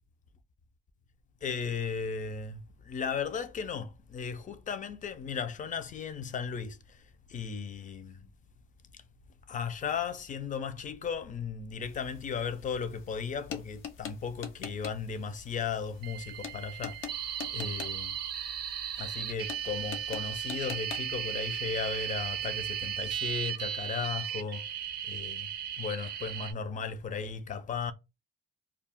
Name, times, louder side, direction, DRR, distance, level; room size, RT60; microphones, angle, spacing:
voice 1, 1.4-7.0 7.3-8.3 9.5-17.0 17.5-18.1 19.0-24.7 25.0-25.5 25.8-27.9, left 6 dB, 40° left, 0.4 m, -36 dB
sound 1, 11.8-23.3, left 7 dB, 80° left, 0.6 m, -46 dB
sound 2, 16.0-26.5, right 9 dB, 55° right, 0.5 m, -36 dB
2.3 x 2.1 x 3.5 m
cardioid pair, 90°, 20 cm